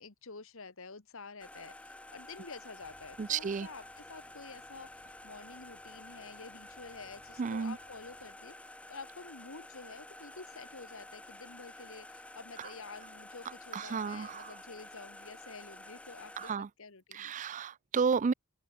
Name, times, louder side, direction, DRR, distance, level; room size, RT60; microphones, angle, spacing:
voice 1, 0.0-3.8 4.1-4.9 5.2-8.5 8.9-17.3, left 4 dB, 60° left, 1.7 m, -49 dB
sound 1, 1.4-16.5, left 1 dB, 5° left, 0.7 m, -51 dB
sound 2, 2.8-8.6, left 1 dB, 25° left, 7.3 m, -67 dB
voice 2, 3.2-3.7 7.4-7.8 12.6-12.7 13.5-14.6 16.4-16.7 17.1-18.3, right 5 dB, 35° right, 0.4 m, -32 dB
open air
head